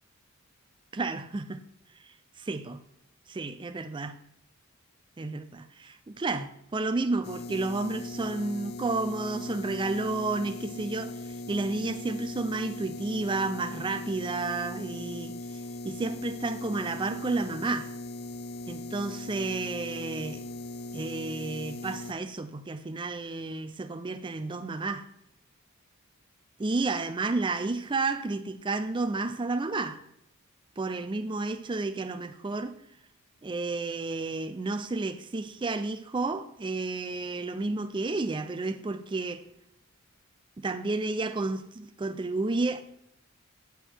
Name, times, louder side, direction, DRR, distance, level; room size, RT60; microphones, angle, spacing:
voice 1, 0.9-1.6 2.0-2.8 3.3-4.2 5.2-11.2 11.5-15.4 15.8-17.9 18.7-20.5 20.9-25.1 26.6-30.0 30.8-32.8 33.4-39.5 40.6-42.8, right 3 dB, 25° right, 0.4 m, -31 dB
sound 1, 7.2-22.1, left 2 dB, 50° left, 0.5 m, -39 dB
8.2 x 6.2 x 4.5 m
head